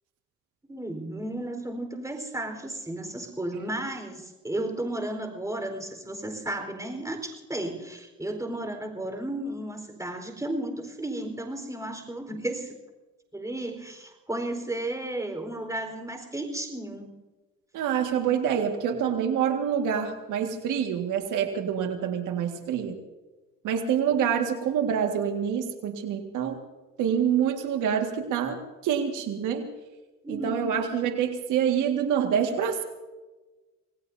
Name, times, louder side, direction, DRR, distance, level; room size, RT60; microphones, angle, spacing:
voice 1, 0.7-12.8 13.3-17.1 30.2-30.7, right 1 dB, 10° right, 5 dB, 4.3 m, -33 dB
voice 2, 17.7-23.0 23.6-26.6 27.0-29.7 30.3-32.8, right 8 dB, 90° right, 5 dB, 1.9 m, -26 dB
27.0 x 19.0 x 2.7 m, 1.2 s
cardioid pair, 90°, 30 cm